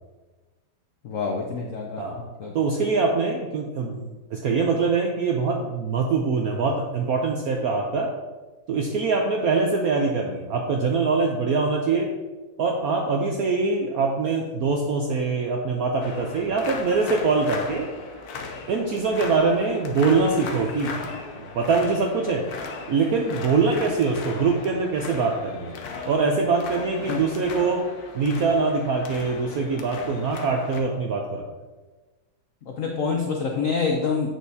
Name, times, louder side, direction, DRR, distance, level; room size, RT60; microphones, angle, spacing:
voice 1, 1.0-2.5 27.1-27.2 32.7-34.4, left 5 dB, 90° left, 2 dB, 0.7 m, -27 dB
voice 2, 2.5-8.1 8.7-12.1 12.6-17.9 18.7-22.4 22.9-25.8 26.1-27.8 28.1-31.4, right 4 dB, 75° right, 1 dB, 0.8 m, -23 dB
sound 1, 16.0-30.8, left 4 dB, 65° left, 1.0 m, -37 dB
7.8 x 6.3 x 2.7 m, 1.2 s
omnidirectional pair, 2.2 m